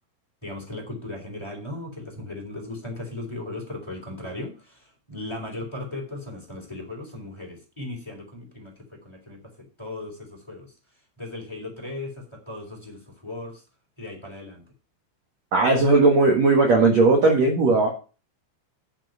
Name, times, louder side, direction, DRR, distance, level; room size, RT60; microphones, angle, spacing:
voice 1, 0.4-10.7 11.2-13.6 14.0-14.6, left 2 dB, 5° left, 1 dB, 3.2 m, -37 dB
voice 2, 15.5-17.9, right 3 dB, 65° right, 0 dB, 1.7 m, -17 dB
9.6 x 7.6 x 5.5 m, 0.34 s
omnidirectional pair, 5.8 m